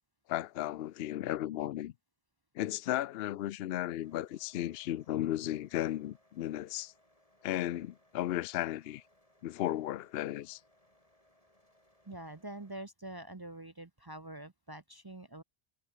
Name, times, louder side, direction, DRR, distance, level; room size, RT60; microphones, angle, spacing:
voice 1, 0.3-1.9 2.6-6.9 7.4-9.0 9.4-10.6, left 13 dB, 70° left, 0.8 m, -35 dB
sound 1, 4.0-12.7, left 1 dB, 35° left, 6.0 m, -69 dB
voice 2, 12.0-15.4, right 1 dB, 25° right, 0.7 m, -45 dB
omnidirectional pair, 1.1 m